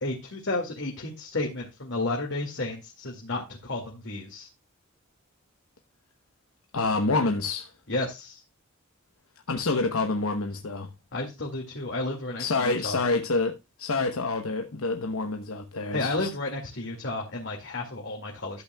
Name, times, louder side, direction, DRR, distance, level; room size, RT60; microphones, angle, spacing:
voice 1, 0.0-4.5 7.9-8.4 11.1-13.0 15.9-18.6, left 2 dB, 60° left, 2.1 m, -32 dB
voice 2, 6.7-7.7 9.5-10.9 12.4-16.3, left 3 dB, 85° left, 1.0 m, -27 dB
12.5 x 8.3 x 2.3 m
head